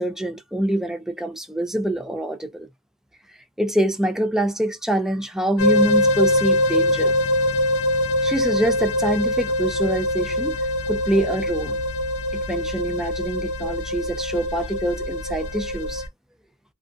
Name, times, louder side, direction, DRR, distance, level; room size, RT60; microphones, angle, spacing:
voice 1, 0.0-2.7 3.6-7.1 8.2-10.6 10.9-11.8 12.3-16.0, right 1 dB, ahead, 0.4 m, -25 dB
sound 1, 5.6-16.1, left 1 dB, 80° left, 0.6 m, -23 dB
2.5 x 2.1 x 2.4 m
head